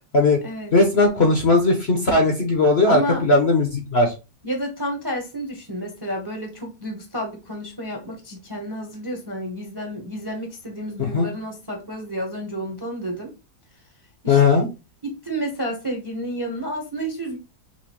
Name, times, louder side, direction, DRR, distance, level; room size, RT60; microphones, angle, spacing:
voice 1, 0.7-4.1 11.0-11.3 14.3-14.7, left 3 dB, 45° left, 3 dB, 1.0 m, -18 dB
voice 2, 2.9-3.2 4.4-13.3 14.2-14.4 15.0-17.4, equal, 20° right, 2 dB, 0.8 m, -30 dB
5.9 x 2.7 x 2.9 m, 0.28 s
omnidirectional pair, 1.8 m